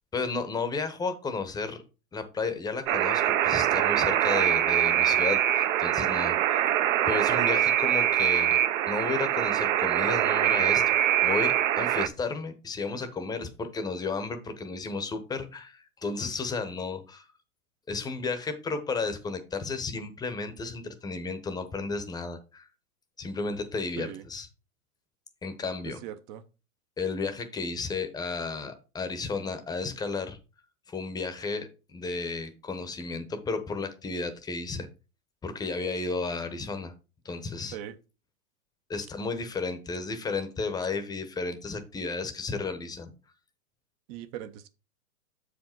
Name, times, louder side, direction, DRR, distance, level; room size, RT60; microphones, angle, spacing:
voice 1, 0.1-1.8 2.1-6.6 7.1-8.6 8.9-17.3 17.9-22.7 23.2-24.5 25.4-26.0 27.0-30.4 30.9-34.9 35.4-36.9 37.2-37.8 38.9-43.1, left 4 dB, 10° left, 0.8 m, -33 dB
Alarm, 2.9-12.1, right 11 dB, 60° right, 0.8 m, -24 dB
voice 2, 26.0-26.4 37.7-38.0 44.1-44.7, right 11 dB, 30° right, 0.6 m, -39 dB
7.3 x 5.0 x 4.4 m
hypercardioid pair, 120°, 43 cm